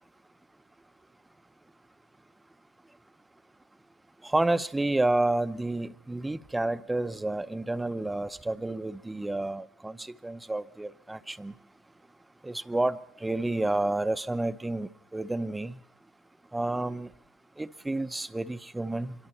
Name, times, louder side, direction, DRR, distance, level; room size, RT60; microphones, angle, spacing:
voice 1, 4.2-11.5 12.4-15.8 16.5-17.1 17.6-19.1, right 2 dB, 10° right, 0.8 m, -30 dB
26.0 x 23.0 x 4.4 m
hypercardioid pair, 85°, 0 cm